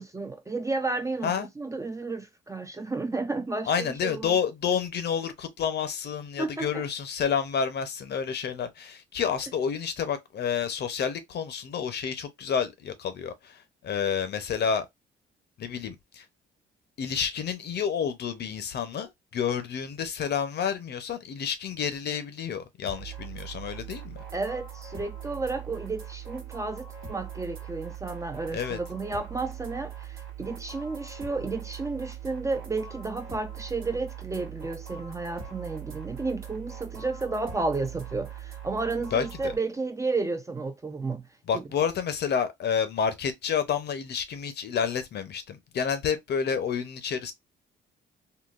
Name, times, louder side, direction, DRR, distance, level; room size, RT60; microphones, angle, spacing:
voice 1, 0.0-4.3 6.4-6.7 24.3-41.3 41.5-41.6, right 3 dB, 15° right, 0.4 m, -32 dB
voice 2, 3.7-14.9 15.6-16.2 17.0-24.2 28.5-28.8 39.1-39.5 41.5-47.3, left 7 dB, 55° left, 0.7 m, -29 dB
sound 1, 22.9-39.6, right 9 dB, 90° right, 1.2 m, -41 dB
3.7 x 2.2 x 2.4 m
cardioid pair, 90°, 20 cm